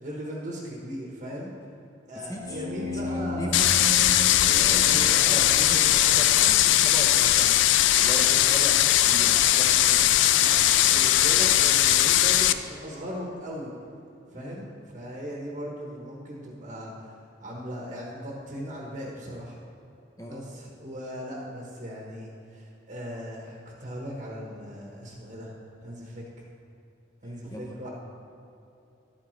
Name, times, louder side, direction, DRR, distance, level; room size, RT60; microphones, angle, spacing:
voice 1, 0.0-1.5 2.1-3.6 4.4-6.2 8.2-8.3 10.3-13.7 14.3-14.7 14.9-17.2 17.4-19.5 20.3-25.5 25.8-26.4 27.2-27.9, equal, 40° right, -3 dB, 1.1 m, -38 dB
voice 2, 2.1-3.7 4.5-7.6 8.0-10.3 14.3-14.6 20.2-20.5 27.5-27.7, equal, 15° left, -1 dB, 0.8 m, -38 dB
sound 1, 2.3-6.9, left 1 dB, 60° right, 0.7 m, -35 dB
sound 2, 3.5-12.5, left 12 dB, 60° left, 0.3 m, -20 dB
11.5 x 8.6 x 3.2 m, 2.7 s
head